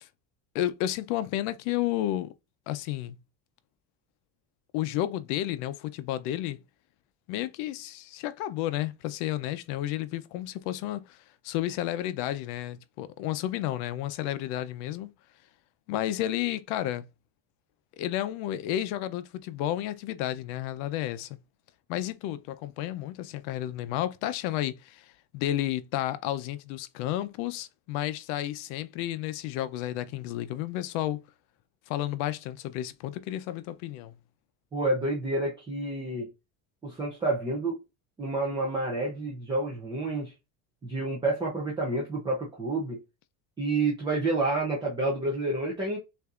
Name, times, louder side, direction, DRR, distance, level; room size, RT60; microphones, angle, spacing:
voice 1, 0.5-2.3 2.7-3.2 4.7-6.6 7.3-11.2 11.4-15.1 15.9-17.1 18.0-21.4 21.9-25.0 25.3-31.2 31.9-34.2, left 13 dB, 80° left, 0.7 m, -31 dB
voice 2, 34.7-36.3 36.8-37.8 38.2-40.3 40.8-43.0 43.6-46.0, right 2 dB, 10° right, 0.4 m, -29 dB
6.6 x 2.6 x 2.4 m
cardioid pair, 180°, 46 cm